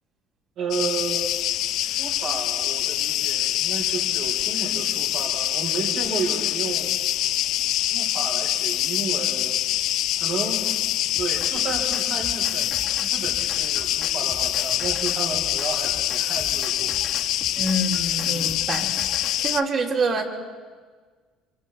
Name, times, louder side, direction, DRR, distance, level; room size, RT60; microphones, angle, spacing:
voice 1, 0.6-1.2 1.9-6.9 7.7-9.6 10.2-10.7 11.2-16.9, right 4 dB, 65° right, -2 dB, 4.8 m, -32 dB
sound 1, 0.7-19.6, left 13 dB, 70° left, 0.5 m, -25 dB
Drum kit, 11.1-19.5, left 2 dB, 15° left, 1.8 m, -42 dB
voice 2, 17.6-19.0 19.4-20.2, right 2 dB, 45° right, 0 dB, 3.3 m, -26 dB
26.0 x 25.0 x 4.3 m, 1.5 s
cardioid pair, 110°, 0 cm